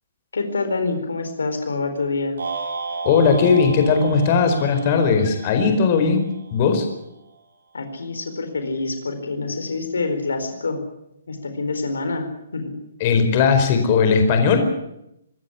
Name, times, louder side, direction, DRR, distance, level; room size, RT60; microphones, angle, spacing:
voice 1, 0.3-2.4 7.7-10.9 11.3-12.8, left 3 dB, 90° left, 8 dB, 4.3 m, -26 dB
sound 1, 2.4-6.7, right 4 dB, 80° right, 5.5 m, -33 dB
voice 2, 3.0-6.9 13.0-14.6, left 5 dB, 40° left, 6 dB, 4.7 m, -18 dB
25.0 x 13.0 x 9.9 m, 0.81 s
hypercardioid pair, 145°, 0 cm